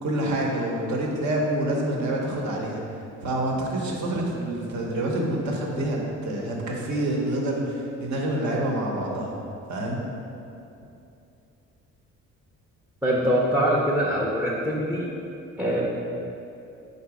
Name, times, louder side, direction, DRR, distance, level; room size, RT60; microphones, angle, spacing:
voice 1, 0.0-2.8 3.2-9.3 9.7-10.0, right 1 dB, 70° right, -1 dB, 0.8 m, -27 dB
voice 2, 13.0-15.1 15.6-15.9, equal, 5° right, -4 dB, 0.4 m, -23 dB
3.8 x 2.7 x 4.8 m, 2.7 s
cardioid pair, 90°, 30 cm